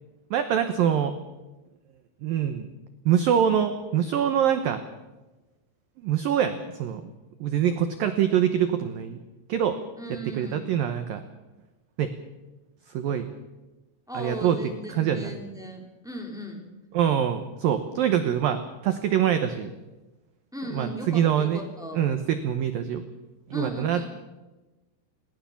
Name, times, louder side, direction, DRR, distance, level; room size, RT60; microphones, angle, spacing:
voice 1, 0.3-1.2 2.2-2.7 3.1-4.8 6.0-7.0 7.4-9.2 9.5-9.8 10.3-11.2 12.0-12.1 12.9-13.3 14.1-14.6 14.9-15.3 16.9-19.7 20.7-21.6 21.9-23.0 23.5-24.1, right 9 dB, 85° right, 9 dB, 2.0 m, -24 dB
voice 2, 10.0-10.7 14.1-16.6 20.5-22.0 23.5-24.1, equal, ahead, 2 dB, 2.2 m, -37 dB
21.0 x 18.5 x 7.2 m, 1.1 s
omnidirectional pair, 5.6 m